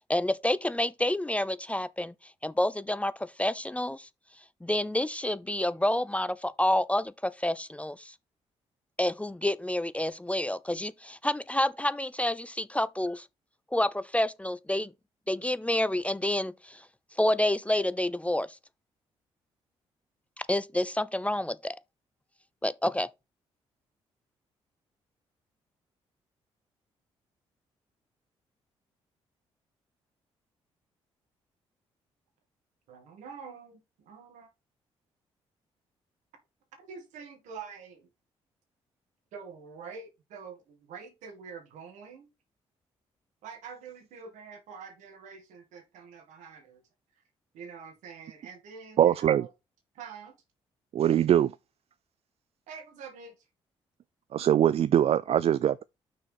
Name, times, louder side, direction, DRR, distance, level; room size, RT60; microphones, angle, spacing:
voice 1, 0.1-2.1 2.4-4.1 4.6-8.1 9.0-13.3 13.7-14.9 15.3-16.8 17.2-18.5 20.5-21.8 22.6-23.1, left 1 dB, 10° left, 0.5 m, -28 dB
voice 2, 32.9-34.5 36.8-38.1 39.3-42.3 43.4-46.8 47.1-47.2 47.5-49.5 49.9-50.4 52.7-53.5, right 6 dB, 80° right, 2.3 m, -46 dB
voice 3, 49.0-49.4 50.9-51.5 54.3-55.8, right 10 dB, 55° right, 0.4 m, -22 dB
6.1 x 4.6 x 5.8 m
supercardioid pair, 50°, 13 cm